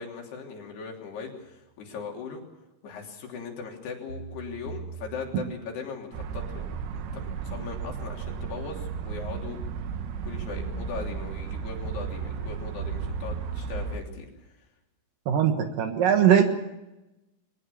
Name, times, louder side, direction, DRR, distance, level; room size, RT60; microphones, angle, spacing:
voice 1, 0.0-2.4 2.8-9.6 10.2-14.5, left 5 dB, 70° left, 1 dB, 5.2 m, -39 dB
sound 1, 1.4-1.5 4.1-5.7 8.8-9.9 12.8-14.1, right 5 dB, 40° right, 1.4 m, -41 dB
sound 2, 6.1-14.0, right 6 dB, 90° right, 3.7 m, -34 dB
voice 2, 15.3-16.4, right 9 dB, 60° right, 6 dB, 2.8 m, -20 dB
22.5 x 19.0 x 7.1 m, 0.98 s
omnidirectional pair, 4.9 m